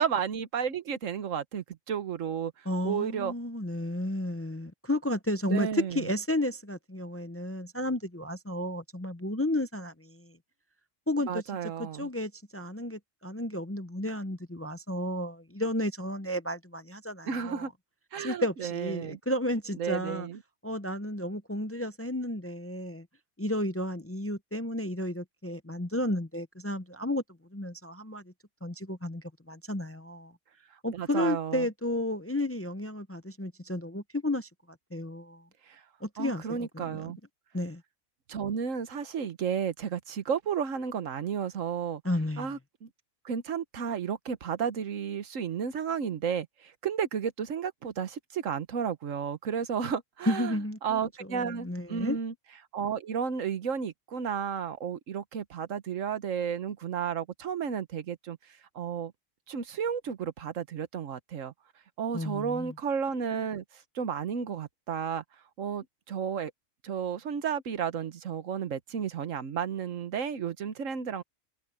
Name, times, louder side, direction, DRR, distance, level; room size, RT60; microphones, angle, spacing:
voice 1, 0.0-3.3 5.5-6.1 11.3-12.1 17.3-17.7 18.1-19.2 19.8-20.4 30.9-31.7 35.7-35.8 36.2-37.2 38.3-42.0 42.4-42.9 43.2-50.5 50.8-52.3 52.7-58.4 58.7-59.1 59.5-61.5 62.0-65.2 65.6-66.5 66.8-71.2, right 7 dB, 85° right, 1.4 m, -32 dB
voice 2, 2.7-10.3 11.1-11.4 11.8-17.7 18.2-20.3 20.6-23.1 23.4-27.2 27.5-28.2 28.6-30.3 30.8-34.5 34.9-35.4 36.0-37.1 37.5-37.8 42.0-42.5 50.3-51.0 51.3-52.2 62.1-62.7, left 1 dB, 15° left, 0.5 m, -32 dB
omnidirectional pair, 1.3 m